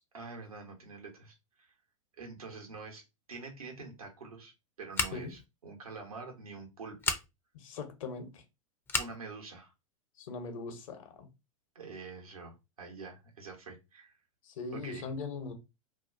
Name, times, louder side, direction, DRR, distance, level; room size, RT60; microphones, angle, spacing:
voice 1, 0.1-1.7 2.2-7.1 9.0-9.7 11.7-14.2 14.7-15.1, right 4 dB, 90° right, 1.0 m, -46 dB
Scissors, 4.9-5.4 7.0-7.2 8.9-9.2, left 4 dB, 10° left, 0.4 m, -32 dB
voice 2, 7.5-8.4 10.2-11.3 14.4-15.5, left 4 dB, 65° left, 0.8 m, -40 dB
2.7 x 2.2 x 2.5 m
hypercardioid pair, 100°, 18 cm